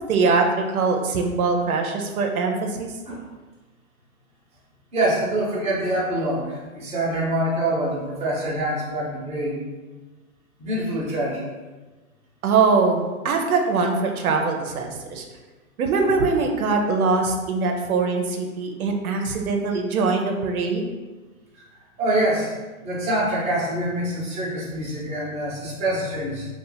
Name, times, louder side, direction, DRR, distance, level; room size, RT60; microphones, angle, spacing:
voice 1, 0.1-2.9 12.4-15.2 15.8-20.8, right 4 dB, 90° right, 3 dB, 0.6 m, -22 dB
voice 2, 4.9-9.6 10.6-11.4 21.5-21.6 22.0-22.5 22.8-26.5, right 1 dB, 15° right, -6 dB, 0.9 m, -25 dB
2.7 x 2.4 x 3.8 m, 1.2 s
hypercardioid pair, 130°, 42 cm